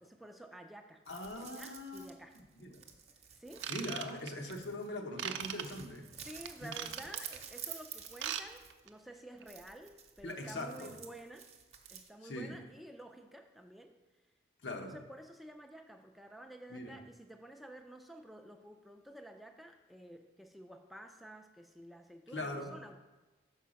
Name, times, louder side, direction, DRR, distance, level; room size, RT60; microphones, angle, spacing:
voice 1, 0.0-1.0 1.3-2.4 3.3-3.7 6.2-11.5 11.9-13.9 14.7-23.0, right 1 dB, ahead, 4 dB, 0.3 m, -51 dB
voice 2, 1.1-2.1 2.6-2.8 3.7-6.1 6.6-6.7 10.2-10.9 12.2-12.5 14.6-15.0 16.7-17.0 22.3-22.7, left 1 dB, 85° left, 3 dB, 1.0 m, -41 dB
sound 1, 1.1-5.0 5.4-8.9 9.4-12.1, right 7 dB, 35° right, 0.7 m, -50 dB
Ratchet pawl / Tools, 3.6-4.5 5.2-5.6 6.4-7.4 8.0-8.4 8.7-8.9 9.4-9.5, right 9 dB, 85° right, 0.5 m, -39 dB
5.6 x 4.9 x 6.2 m, 1.2 s
head